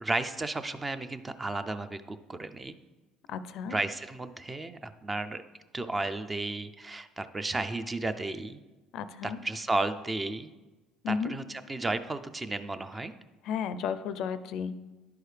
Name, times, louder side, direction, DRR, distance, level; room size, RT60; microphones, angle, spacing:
voice 1, 0.0-2.8 3.7-5.4 5.7-8.6 9.2-10.5 11.1-13.1, right 2 dB, 20° right, 11 dB, 0.4 m, -33 dB
voice 2, 3.3-3.8 8.9-9.4 11.0-11.3 13.4-14.7, left 7 dB, 65° left, 13 dB, 0.4 m, -33 dB
10.5 x 4.6 x 3.3 m, 1.2 s
cardioid pair, 110°, 0 cm